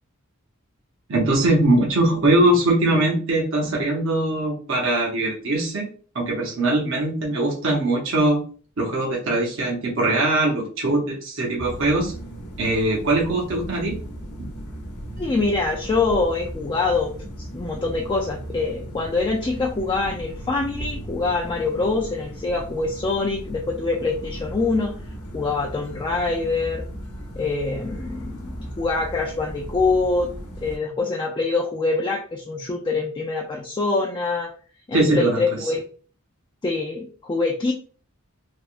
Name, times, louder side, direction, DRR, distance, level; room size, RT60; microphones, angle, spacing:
voice 1, 1.1-5.9 6.1-8.4 8.8-12.1 12.6-13.9 34.9-35.6, right 2 dB, 60° right, -1 dB, 0.8 m, -21 dB
sound 1, 11.6-30.8, equal, 85° left, 0.8 m, -36 dB
voice 2, 15.2-24.9 25.3-26.9 27.4-30.3 30.6-34.5 34.9-35.8 36.6-37.7, left 3 dB, 20° left, -2 dB, 0.3 m, -24 dB
3.3 x 2.2 x 2.4 m, 0.40 s
head